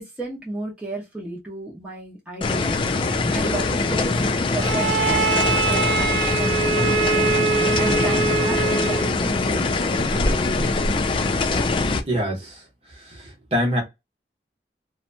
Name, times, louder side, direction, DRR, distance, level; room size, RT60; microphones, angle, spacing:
voice 1, 0.0-2.8 3.3-7.1 7.8-10.8, right 2 dB, 5° right, 0.8 m, -34 dB
sound 1, 2.4-12.0, left 3 dB, 30° left, 0.3 m, -22 dB
Bowed string instrument, 4.6-9.2, right 5 dB, 90° right, 0.5 m, -23 dB
voice 2, 12.0-12.6 13.0-13.8, equal, 35° right, 0.9 m, -25 dB
2.7 x 2.2 x 2.6 m
head